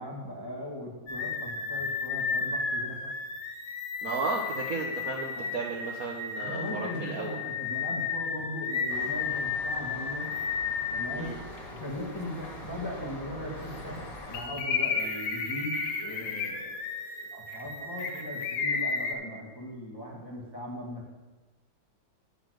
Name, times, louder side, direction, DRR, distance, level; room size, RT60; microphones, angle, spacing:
voice 1, 0.0-3.1 5.3-5.5 6.4-10.3 10.9-11.3 11.7-21.2, equal, 10° left, -2 dB, 1.4 m, -39 dB
sound 1, 1.1-11.2 11.8-11.9 14.3-19.1, left 5 dB, 85° left, 1.8 m, -33 dB
voice 2, 4.0-7.4 11.1-11.4, right 3 dB, 55° right, 0 dB, 1.1 m, -34 dB
sound 2, 8.9-14.4, left 1 dB, 45° left, 2.2 m, -43 dB
8.6 x 6.9 x 6.3 m, 1.2 s
omnidirectional pair, 2.3 m